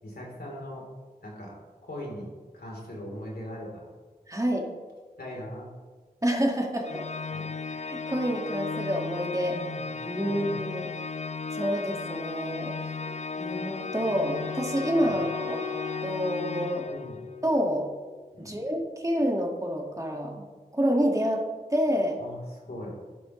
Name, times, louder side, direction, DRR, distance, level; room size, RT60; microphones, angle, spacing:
voice 1, 0.0-0.8 1.2-1.6 1.9-3.9 5.2-5.7 7.3-7.4 9.4-9.9 10.2-10.5 15.0-15.2 16.9-17.2 18.3-18.6 22.2-23.0, left 1 dB, 70° left, -3 dB, 3.5 m, -40 dB
voice 2, 4.3-4.7 6.2-7.1 7.8-9.6 10.0-10.9 11.5-12.7 13.4-15.6 16.0-16.9 17.4-17.9 18.4-20.5 20.7-22.2, equal, 20° right, 0 dB, 1.9 m, -28 dB
Organ, 6.8-17.4, left 4 dB, 45° left, 0.4 m, -35 dB
Wind instrument woodwind instrument, 13.0-18.0, left 6 dB, 40° right, 3.7 m, -39 dB
12.0 x 11.0 x 3.2 m, 1.4 s
wide cardioid pair, 45°, 17 cm